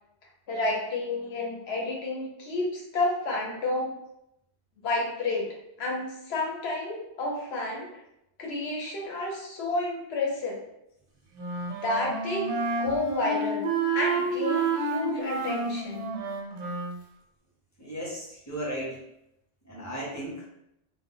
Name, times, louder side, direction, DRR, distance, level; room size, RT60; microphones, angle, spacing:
voice 1, 0.5-3.9 4.8-5.5 5.8-7.9 8.4-10.6 11.7-12.5 12.8-16.1, left 2 dB, 70° left, -1 dB, 0.9 m, -30 dB
Wind instrument woodwind instrument, 11.3-17.0, right 4 dB, 80° right, 0.9 m, -30 dB
voice 2, 17.8-19.0 19.6-20.4, equal, 20° left, -5 dB, 0.7 m, -35 dB
2.2 x 2.1 x 3.7 m, 0.81 s
omnidirectional pair, 1.1 m